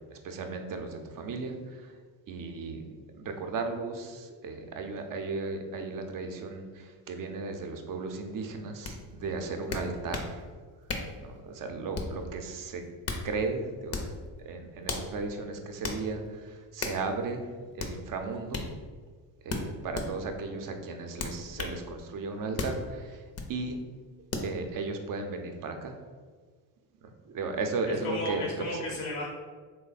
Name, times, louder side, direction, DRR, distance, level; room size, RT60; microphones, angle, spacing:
voice 1, 0.0-1.9 2.3-2.8 3.1-10.4 11.2-12.8 13.2-14.0 14.4-18.6 19.4-23.2 23.5-23.8 24.4-25.9 27.0-28.8, right 3 dB, 45° right, 5 dB, 0.6 m, -35 dB
sound 1, 8.8-9.0 9.7-10.3 10.9-11.2 11.9-12.2 12.8-13.3 13.9-14.2 14.9-15.1 15.8-16.0 16.8-17.0 17.8-18.0 18.5-18.7 19.5-20.1 21.2-21.8 22.6-22.8 23.3-23.5 24.3-24.5, left 3 dB, 35° left, 0.5 m, -34 dB
voice 2, 27.9-29.3, left 1 dB, 75° left, -2 dB, 0.7 m, -34 dB
3.2 x 2.1 x 3.9 m, 1.5 s
supercardioid pair, 80°, 49 cm